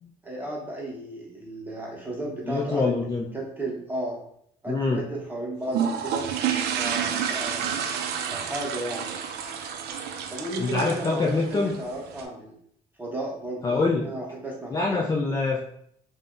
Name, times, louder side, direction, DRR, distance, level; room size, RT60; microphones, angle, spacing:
voice 1, 0.2-2.9 3.3-4.2 4.6-6.3 6.8-7.9 8.3-9.1 10.3-12.5 13.0-15.0, right 1 dB, 10° right, -4 dB, 0.9 m, -34 dB
voice 2, 2.5-3.3 4.7-5.0 10.6-11.8 13.6-14.1 14.7-15.6, left 3 dB, 20° left, -2 dB, 0.4 m, -25 dB
sound 1, 5.7-12.3, right 8 dB, 75° right, 0.4 m, -30 dB
2.5 x 2.1 x 3.6 m, 0.68 s
cardioid pair, 110°, 17 cm